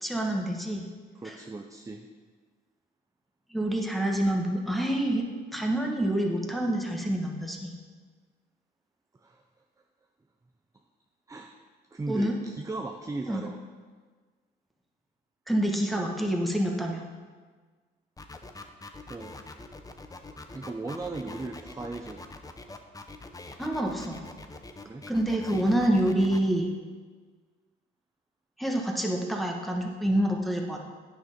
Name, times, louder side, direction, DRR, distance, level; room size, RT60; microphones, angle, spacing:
voice 1, 0.0-0.9 1.2-1.3 3.5-5.3 5.5-7.7 12.1-12.3 13.3-13.4 15.5-17.0 23.6-24.2 25.1-26.7 28.6-30.8, right 1 dB, ahead, 0 dB, 1.5 m, -27 dB
voice 2, 1.1-2.1 9.1-9.4 11.3-11.6 11.9-13.6 19.1-19.4 20.5-22.2 24.8-25.1, right 3 dB, 15° right, 4 dB, 0.6 m, -37 dB
sound 1, 18.2-26.4, left 3 dB, 20° left, 0.8 m, -44 dB
9.3 x 6.5 x 5.4 m, 1.5 s
cardioid pair, 90°, 20 cm